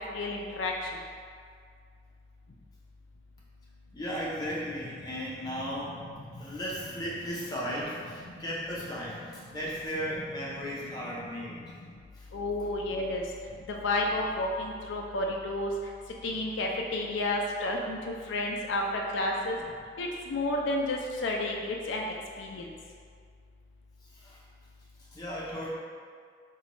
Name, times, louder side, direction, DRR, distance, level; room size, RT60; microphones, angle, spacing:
voice 1, 0.1-0.9 6.3-6.4 10.9-11.1 12.3-13.2 13.7-15.7 16.2-19.6 20.0-22.7, left 2 dB, 90° left, 0 dB, 0.4 m, -31 dB
voice 2, 3.9-11.8 12.1-12.3 24.1-24.4 25.1-25.7, equal, 20° left, -7 dB, 0.6 m, -36 dB
4.1 x 2.3 x 2.9 m, 2.1 s
head